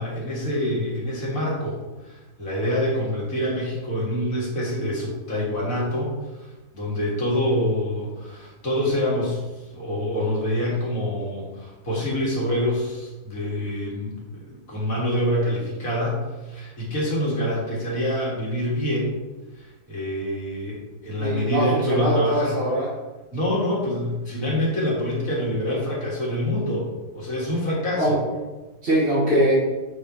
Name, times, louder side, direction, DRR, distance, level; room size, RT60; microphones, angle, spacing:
voice 1, 0.0-6.5 6.7-9.4 9.7-19.1 19.6-22.6 23.3-28.2, left 1 dB, 50° left, -5 dB, 2.6 m, -26 dB
voice 2, 21.2-22.9 27.9-28.2 28.8-29.5, right 1 dB, 35° right, -8 dB, 1.6 m, -22 dB
7.9 x 4.9 x 4.2 m, 1.2 s
omnidirectional pair, 1.8 m